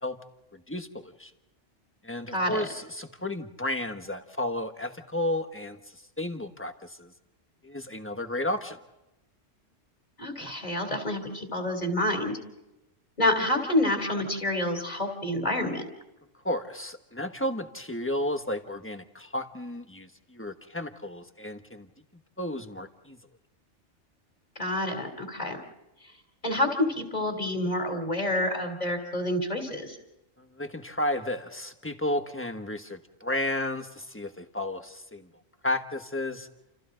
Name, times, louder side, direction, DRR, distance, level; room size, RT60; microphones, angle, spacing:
voice 1, 0.5-1.3 2.0-5.8 6.2-7.1 7.6-8.8 16.4-21.9 22.4-23.2 30.4-35.3 35.6-36.5, left 1 dB, 10° left, 7 dB, 1.3 m, -32 dB
voice 2, 2.3-2.6 10.2-12.4 13.2-15.9 24.6-25.6 26.4-30.0, left 1 dB, 35° left, 4 dB, 3.4 m, -28 dB
29.0 x 28.5 x 3.9 m, 0.94 s
omnidirectional pair, 1.2 m